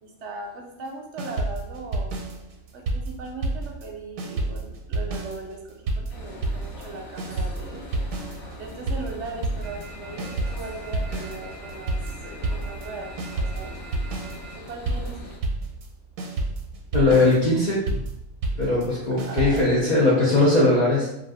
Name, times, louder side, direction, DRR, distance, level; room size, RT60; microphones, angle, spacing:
voice 1, 0.0-2.1 2.7-7.9 8.6-12.0 12.5-13.7 14.5-15.2 19.1-20.1, right 2 dB, 70° right, 1 dB, 0.8 m, -38 dB
sound 1, 1.2-3.9 4.2-19.8, right 2 dB, 90° right, 1.0 m, -30 dB
sound 2, 6.1-15.4, left 1 dB, 60° left, 1.0 m, -42 dB
sound 3, 9.6-14.5, right 6 dB, ahead, 0.9 m, -45 dB
voice 2, 16.9-18.0 18.6-21.1, left 2 dB, 45° left, -6 dB, 0.6 m, -20 dB
2.5 x 2.4 x 3.4 m, 0.82 s
omnidirectional pair, 1.4 m